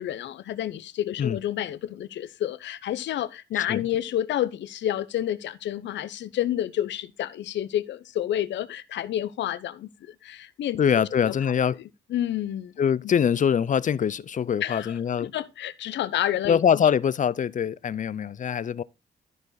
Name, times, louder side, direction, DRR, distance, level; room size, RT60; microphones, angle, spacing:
voice 1, 0.0-11.3 12.1-12.7 14.6-16.6, left 12 dB, 85° left, 0.7 m, -29 dB
voice 2, 10.8-11.8 12.8-15.3 16.5-18.8, left 8 dB, 45° left, 0.5 m, -23 dB
13.0 x 5.0 x 3.9 m
cardioid pair, 95°, 18 cm